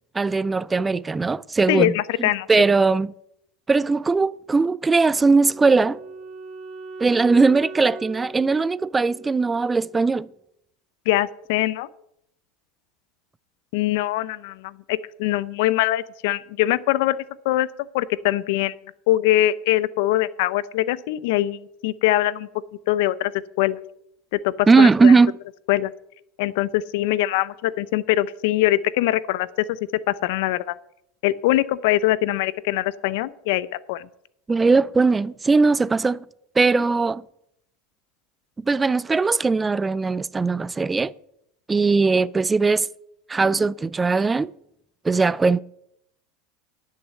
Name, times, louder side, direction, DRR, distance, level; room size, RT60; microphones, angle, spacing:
voice 1, 0.1-1.9 2.2-3.1 3.7-6.0 7.0-10.3 24.7-25.4 34.5-36.2 36.6-37.2 38.6-41.1 41.7-42.9 43.3-44.5 45.0-45.6, right 4 dB, 15° right, 0.3 m, -19 dB
voice 2, 1.7-2.5 11.1-11.9 13.7-17.7 17.9-18.7 19.1-22.5 22.9-23.3 23.6-23.8 24.4-25.1 25.7-25.9 26.4-29.8 30.1-30.8 31.2-34.1, left 15 dB, 70° left, 0.6 m, -22 dB
Wind instrument woodwind instrument, 5.1-10.2, right 3 dB, 40° right, 2.2 m, -40 dB
11.0 x 6.6 x 7.6 m
supercardioid pair, 125°, 0 cm